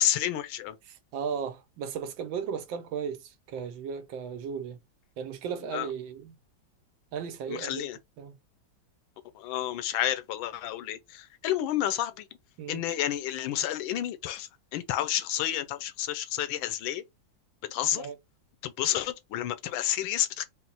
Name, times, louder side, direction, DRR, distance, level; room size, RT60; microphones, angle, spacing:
voice 1, 0.0-0.7 5.7-5.9 7.5-8.0 9.4-12.1 12.7-17.0 17.7-18.0 18.6-20.4, left 12 dB, 85° left, 1.4 m, -30 dB
voice 2, 0.8-4.8 5.2-6.3 7.1-7.9 8.2-8.4 12.6-12.9 17.9-18.2, right 7 dB, 80° right, 1.4 m, -36 dB
4.3 x 2.0 x 3.9 m
omnidirectional pair, 2.1 m